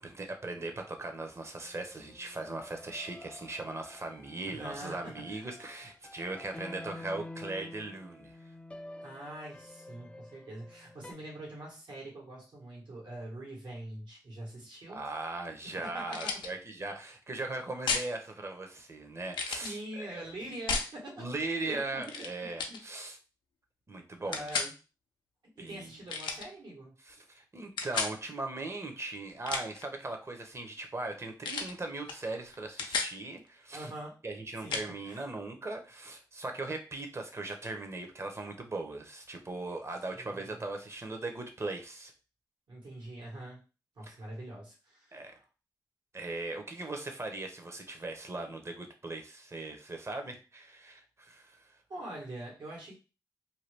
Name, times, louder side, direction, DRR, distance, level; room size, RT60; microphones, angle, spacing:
voice 1, 0.0-8.4 14.9-20.3 21.2-23.2 23.9-24.5 25.6-25.9 27.0-33.9 34.2-42.1 44.0-44.1 45.1-45.3 46.1-51.7, right 2 dB, 35° right, 5 dB, 0.8 m, -39 dB
sound 1, 1.6-11.1, left 1 dB, 15° left, 0.4 m, -49 dB
voice 2, 4.5-5.4 9.0-15.0 15.9-16.0 19.5-21.2 21.6-22.3 22.7-22.8 24.2-24.7 25.6-26.9 33.7-34.1 34.6-35.3 40.1-40.6 42.7-43.6 43.9-45.4 51.9-52.9, right 1 dB, 75° right, -3 dB, 1.5 m, -44 dB
sound 2, 16.1-16.5 17.9-18.1 19.3-19.7 20.7-20.9 22.0-22.3 22.6-22.8 24.3-24.7 26.1-26.5 27.8-28.2 29.3-29.8 31.4-31.7 32.1-32.2 32.5-33.1 34.7-34.9, left 4 dB, 85° left, 0.5 m, -33 dB
2.8 x 2.3 x 3.3 m, 0.33 s
cardioid pair, 50°, 8 cm